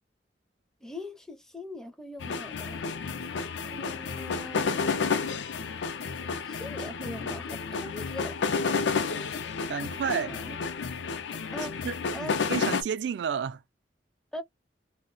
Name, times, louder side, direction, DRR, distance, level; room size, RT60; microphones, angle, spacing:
voice 1, 0.8-2.8 3.6-5.1 6.5-8.4 10.1-10.6 11.5-11.8 12.1-12.4 14.3-14.4, left 1 dB, 5° left, 0.4 m, -41 dB
sound 1, 2.2-12.8, left 5 dB, 80° left, 0.4 m, -31 dB
voice 2, 9.7-10.4 11.8-13.6, right 7 dB, 75° right, 0.3 m, -31 dB
2.2 x 2.1 x 3.8 m
head